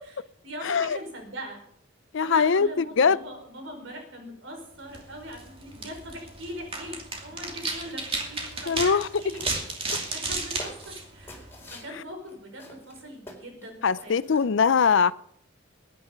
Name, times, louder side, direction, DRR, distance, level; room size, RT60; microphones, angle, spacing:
voice 1, 0.0-1.6 2.2-9.4 9.8-14.4, equal, 80° right, 4.9 m, -41 dB
voice 2, 0.6-1.0 2.1-3.2 8.7-9.1 13.8-15.1, left 6 dB, 70° left, 0.5 m, -22 dB
sound 1, 4.8-11.8, right 3 dB, 30° right, 2.6 m, -34 dB
sound 2, 9.4-11.9 12.3-12.4 12.6-13.7 14.0-14.4, left 1 dB, 10° left, 4.3 m, -44 dB
21.5 x 9.6 x 5.2 m
head